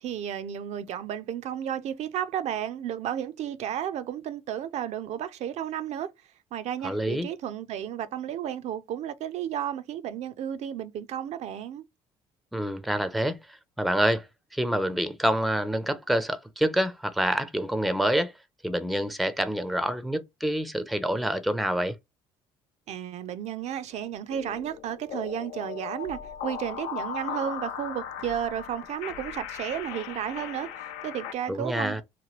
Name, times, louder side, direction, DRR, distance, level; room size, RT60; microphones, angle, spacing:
voice 1, 0.0-6.1 6.5-11.9 22.9-32.0, right 10 dB, 55° right, 0.4 m, -33 dB
voice 2, 6.8-7.3 12.5-13.4 13.8-14.3 14.5-18.3 18.6-21.9 31.5-32.0, right 1 dB, ahead, 0.4 m, -27 dB
sound 1, 24.3-31.3, left 8 dB, 85° left, 0.5 m, -38 dB
2.9 x 2.2 x 2.9 m
supercardioid pair, 75°, 13 cm